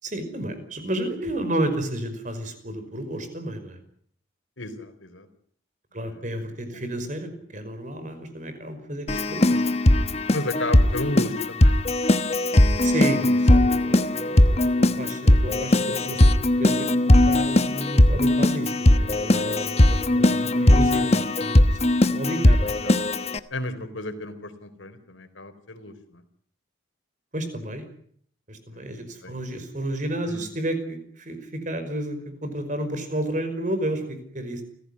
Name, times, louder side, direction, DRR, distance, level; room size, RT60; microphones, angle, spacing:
voice 1, 0.0-3.8 5.9-9.6 12.8-16.9 17.3-22.7 27.3-27.8 28.5-34.6, right 1 dB, 40° right, 9 dB, 5.3 m, -31 dB
voice 2, 4.6-5.3 6.0-6.8 10.3-11.9 19.3-19.5 22.7-26.2 28.7-29.5 30.2-30.4, left 1 dB, 80° left, 9 dB, 4.1 m, -34 dB
Keyboard (musical), 9.1-23.4, left 1 dB, 30° left, 1.1 m, -19 dB
29.5 x 16.0 x 9.7 m, 0.63 s
head